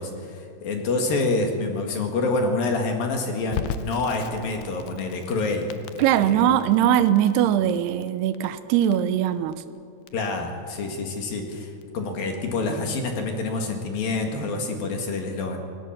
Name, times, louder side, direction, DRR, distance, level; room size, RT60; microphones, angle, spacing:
voice 1, 0.0-6.4 10.1-15.6, left 3 dB, 55° left, 3 dB, 3.3 m, -27 dB
Crackle, 3.5-14.3, left 7 dB, 80° left, 2.2 m, -39 dB
voice 2, 6.0-9.6, right 10 dB, 75° right, 10 dB, 2.5 m, -21 dB
28.0 x 18.5 x 7.4 m, 2.4 s
omnidirectional pair, 5.5 m